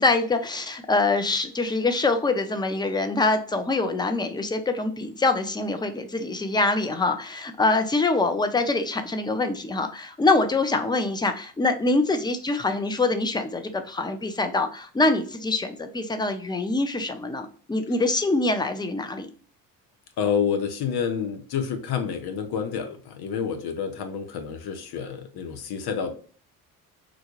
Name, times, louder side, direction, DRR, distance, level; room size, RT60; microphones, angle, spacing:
voice 1, 0.0-19.3, left 3 dB, 10° left, 8 dB, 0.5 m, -24 dB
voice 2, 20.2-26.1, left 7 dB, 60° left, 7 dB, 0.9 m, -28 dB
3.9 x 2.3 x 3.0 m, 0.43 s
hypercardioid pair, 55°, 43 cm